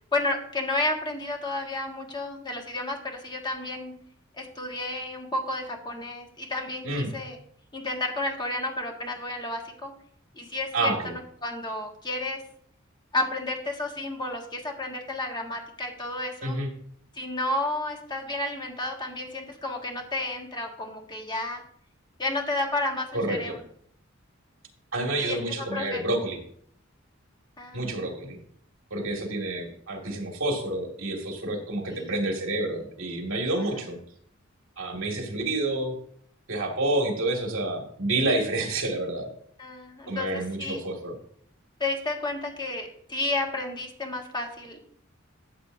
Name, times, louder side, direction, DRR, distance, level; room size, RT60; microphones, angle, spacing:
voice 1, 0.1-3.9 4.4-7.4 7.7-9.9 10.3-12.4 13.1-16.6 17.1-21.6 22.2-23.6 25.2-25.4 25.7-26.0 27.6-28.0 31.9-32.2 33.8-33.9 39.6-40.8 41.8-44.8, left 2 dB, 20° left, 2 dB, 1.5 m, -31 dB
voice 2, 10.7-11.1 16.4-16.7 23.1-23.6 24.9-26.4 27.7-28.4 28.9-34.0 34.8-35.9 36.5-39.3 40.1-41.2, right 2 dB, 70° right, 1 dB, 2.1 m, -28 dB
13.0 x 7.8 x 2.7 m, 0.63 s
head